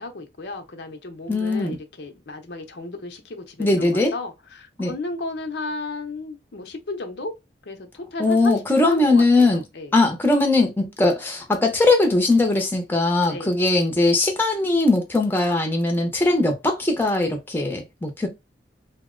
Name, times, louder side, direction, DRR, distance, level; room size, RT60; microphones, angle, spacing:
voice 1, 0.0-7.3 7.7-9.9 13.2-13.6, left 2 dB, 65° left, 0.7 m, -34 dB
voice 2, 1.3-1.8 3.6-4.1 4.8-4.9 8.2-9.6 9.9-18.3, left 2 dB, 10° left, 0.7 m, -20 dB
2.8 x 2.0 x 3.7 m
head